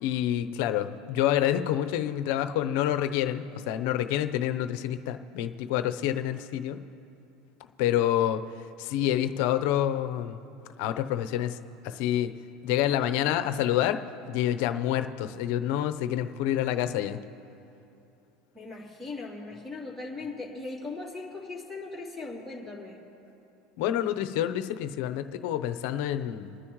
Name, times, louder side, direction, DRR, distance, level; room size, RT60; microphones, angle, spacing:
voice 1, 0.0-6.8 7.8-8.4 8.8-10.4 10.8-11.6 11.8-12.3 12.6-14.0 14.3-17.2 23.8-26.5, left 11 dB, 70° left, 9 dB, 0.8 m, -27 dB
voice 2, 18.5-23.0, left 3 dB, ahead, -3 dB, 3.1 m, -39 dB
28.5 x 9.8 x 3.1 m, 2.8 s
supercardioid pair, 120°, 0 cm